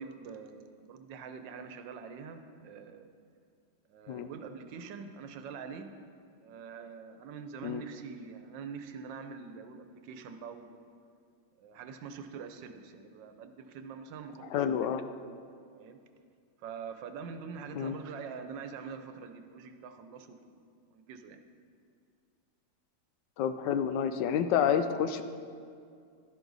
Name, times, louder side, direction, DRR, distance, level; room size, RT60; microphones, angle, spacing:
voice 1, 0.0-3.1 3.9-5.9 6.4-10.8 11.6-14.7 15.7-16.0 16.6-20.5 20.9-21.4, right 6 dB, 85° right, 8 dB, 1.4 m, -44 dB
voice 2, 14.5-15.0 17.7-18.0 23.4-25.2, left 8 dB, 80° left, 10 dB, 1.2 m, -29 dB
12.0 x 11.0 x 4.0 m, 2.3 s
omnidirectional pair, 1.9 m